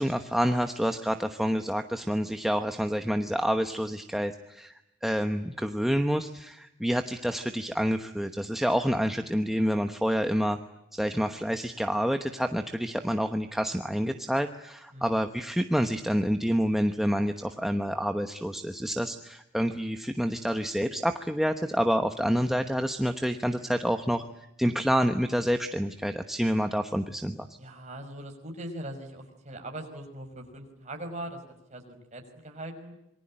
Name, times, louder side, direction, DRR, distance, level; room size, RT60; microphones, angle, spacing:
voice 1, 0.0-10.6 10.9-24.2 24.6-27.5, equal, ahead, 6 dB, 1.0 m, -28 dB
voice 2, 14.9-15.3 27.6-31.4 31.7-32.9, right 1 dB, 35° right, 3 dB, 5.6 m, -41 dB
27.0 x 23.5 x 8.9 m, 0.87 s
head